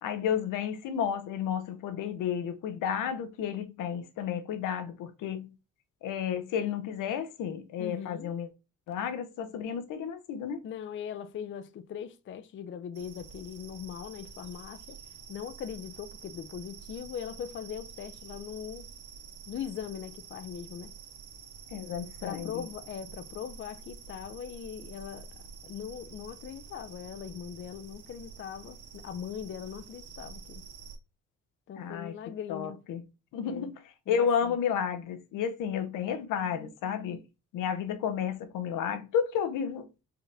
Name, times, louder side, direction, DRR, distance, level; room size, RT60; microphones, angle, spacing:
voice 1, 0.0-5.5 6.0-8.5 8.9-10.6 21.7-22.6 31.8-32.1 32.5-33.0 33.3-33.7 34.1-37.2 37.5-39.9, left 8 dB, 85° left, 0.8 m, -32 dB
voice 2, 7.8-8.3 10.6-15.0 15.3-18.9 19.5-20.9 22.2-25.3 25.6-30.7 31.7-32.8 33.4-33.7 34.1-34.5, left 8 dB, 40° left, 0.4 m, -40 dB
Insect in a tree, 12.9-31.0, right 6 dB, 75° right, 1.2 m, -48 dB
4.7 x 2.5 x 3.3 m
cardioid pair, 85°, 31 cm